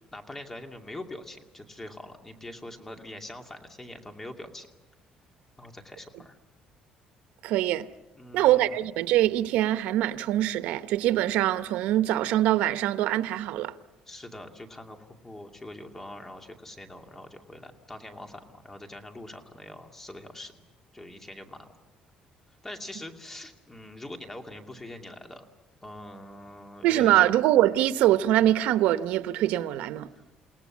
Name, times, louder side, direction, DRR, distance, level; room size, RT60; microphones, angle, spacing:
voice 1, 0.1-4.7 5.6-6.4 8.2-8.8 14.1-20.5 20.9-21.7 22.6-25.4 25.8-27.3 30.1-30.2, left 1 dB, 15° left, 2.5 m, -43 dB
voice 2, 7.4-7.9 8.3-13.7 26.8-30.1, right 13 dB, 85° right, 0.9 m, -23 dB
29.0 x 18.0 x 7.4 m
cardioid pair, 140°, 2 cm